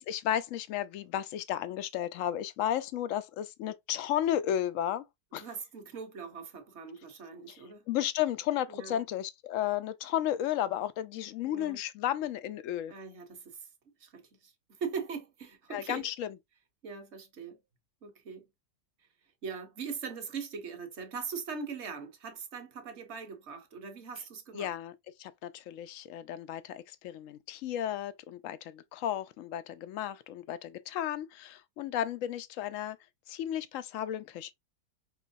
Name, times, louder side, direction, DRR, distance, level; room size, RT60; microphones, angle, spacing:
voice 1, 0.0-5.0 5.3-5.5 7.9-12.9 15.7-16.3 24.5-24.9 25.2-33.0 33.3-34.5, left 11 dB, 75° left, 0.7 m, -33 dB
voice 2, 5.4-7.9 8.7-9.0 11.4-11.8 12.9-13.6 14.0-16.1 16.8-17.6 18.0-18.4 19.4-24.7, right 5 dB, 45° right, 1.1 m, -41 dB
5.3 x 3.1 x 2.5 m
omnidirectional pair, 1.9 m